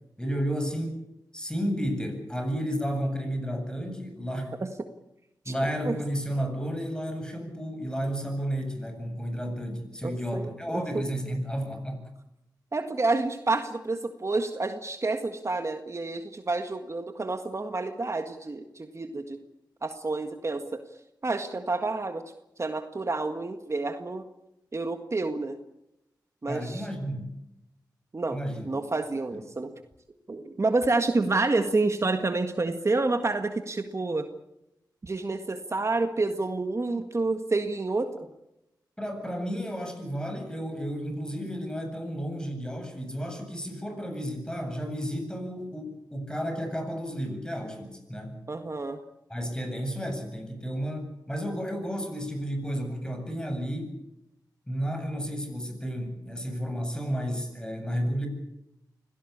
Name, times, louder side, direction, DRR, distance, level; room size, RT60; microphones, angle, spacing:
voice 1, 0.2-1.0 1.3-4.6 5.4-12.1 26.5-27.3 28.3-28.7 39.0-48.3 49.3-54.0 54.7-58.3, equal, 10° left, 5 dB, 8.0 m, -32 dB
voice 2, 10.0-11.3 12.7-19.4 19.8-20.8 21.2-22.2 22.6-24.2 24.7-25.6 26.4-26.9 28.1-28.4 28.6-29.7 30.3-34.3 35.0-38.3 48.5-49.0, right 3 dB, 40° right, 7 dB, 1.8 m, -29 dB
25.0 x 17.5 x 8.7 m, 0.88 s
cardioid pair, 60°, 7 cm